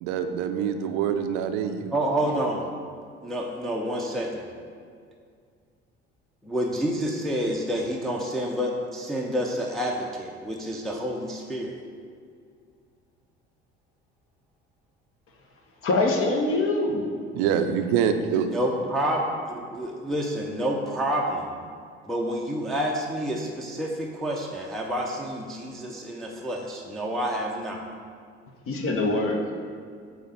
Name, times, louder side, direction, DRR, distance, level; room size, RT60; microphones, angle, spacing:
voice 1, 0.0-1.9 17.3-18.5, right 8 dB, 60° right, 8 dB, 0.5 m, -25 dB
voice 2, 1.9-2.7 3.2-4.5 6.4-11.8 18.4-21.5 22.0-27.8, equal, ahead, -2 dB, 0.6 m, -28 dB
voice 3, 15.8-17.0 28.7-29.6, left 2 dB, 40° left, 2 dB, 0.9 m, -24 dB
7.9 x 2.8 x 4.3 m, 2.2 s
figure-of-eight pair, 55°, 33 cm